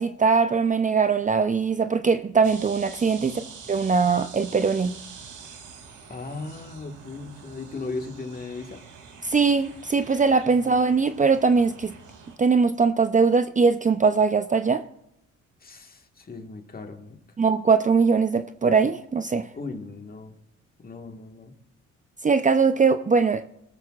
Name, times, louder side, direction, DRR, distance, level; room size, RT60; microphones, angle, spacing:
voice 1, 0.0-3.4 3.7-5.0 9.2-11.9 12.4-14.8 17.4-19.5 22.2-23.4, right 5 dB, 25° right, 0.6 m, -21 dB
sound 1, 2.4-12.4, right 5 dB, 75° right, 2.8 m, -45 dB
voice 2, 3.2-3.5 6.1-8.8 15.6-17.2 19.5-20.4 20.8-21.5, left 3 dB, 30° left, 1.6 m, -37 dB
19.5 x 14.0 x 2.4 m
cardioid pair, 90°, 30 cm